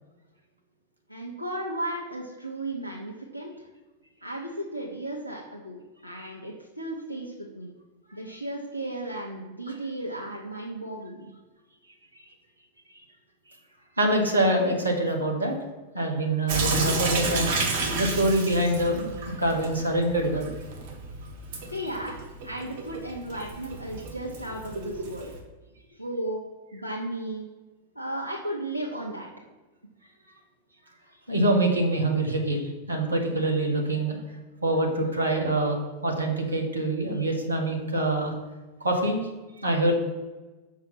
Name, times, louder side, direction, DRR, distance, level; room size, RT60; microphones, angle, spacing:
voice 1, 1.1-3.7 4.2-7.7 8.1-11.3 21.7-25.3 25.9-26.4 26.7-27.5 27.9-29.3, right 1 dB, 90° left, -3 dB, 0.8 m, -35 dB
voice 2, 14.0-15.6 15.9-17.5 18.0-19.1 19.4-20.5 31.3-34.2 34.6-38.3 38.8-39.2 39.6-39.9, right 1 dB, 80° right, 2 dB, 1.2 m, -25 dB
Sink (filling or washing) / Drip, 16.5-25.4, right 2 dB, 50° right, 1.3 m, -31 dB
5.7 x 4.8 x 5.9 m, 1.2 s
figure-of-eight pair, 90°, 0 cm